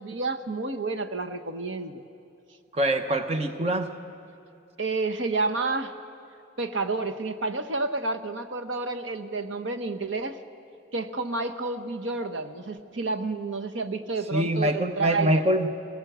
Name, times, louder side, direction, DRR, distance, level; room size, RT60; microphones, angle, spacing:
voice 1, 0.0-2.0 4.8-5.9 6.6-10.4 10.9-15.4, right 3 dB, 70° right, 7 dB, 1.0 m, -30 dB
voice 2, 2.7-3.9 14.3-15.7, right 1 dB, 30° right, 8 dB, 0.9 m, -24 dB
21.5 x 19.0 x 8.0 m, 2.8 s
head